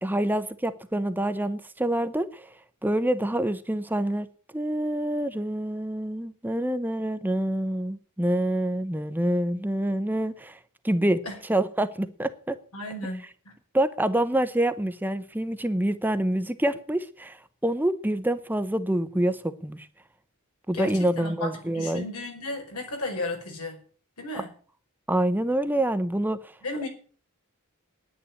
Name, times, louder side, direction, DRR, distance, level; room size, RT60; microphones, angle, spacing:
voice 1, 0.0-2.5 2.8-4.3 4.5-10.6 10.8-12.6 13.7-19.9 20.7-22.1 25.1-26.5, right 1 dB, 10° right, 0.8 m, -26 dB
voice 2, 12.7-13.6 20.7-23.8 24.2-24.5 26.6-26.9, left 2 dB, 85° left, 5.1 m, -34 dB
10.0 x 10.0 x 9.6 m
head